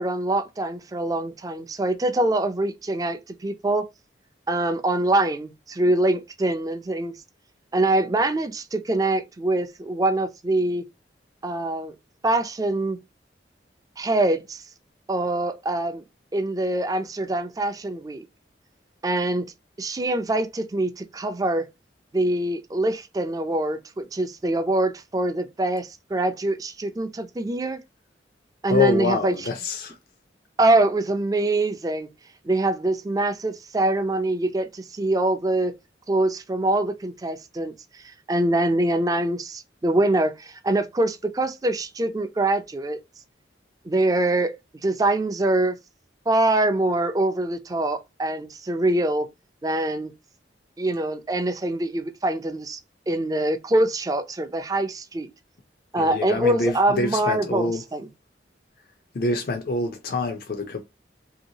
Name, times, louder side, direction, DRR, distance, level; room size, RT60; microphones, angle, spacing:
voice 1, 0.0-3.9 4.5-7.2 7.7-10.8 11.4-11.9 12.2-13.0 14.0-14.6 15.1-16.0 16.3-18.3 19.0-19.5 19.8-21.7 22.1-27.8 28.6-29.4 30.6-32.1 32.4-35.7 36.1-43.0 43.9-44.5 44.8-45.8 46.3-49.3 49.6-50.1 50.8-52.8 53.1-55.3 55.9-58.1, right 2 dB, 20° right, 0.4 m, -24 dB
voice 2, 28.7-30.0 56.0-57.8 59.1-60.8, left 3 dB, 55° left, 0.4 m, -26 dB
3.1 x 2.8 x 2.7 m
head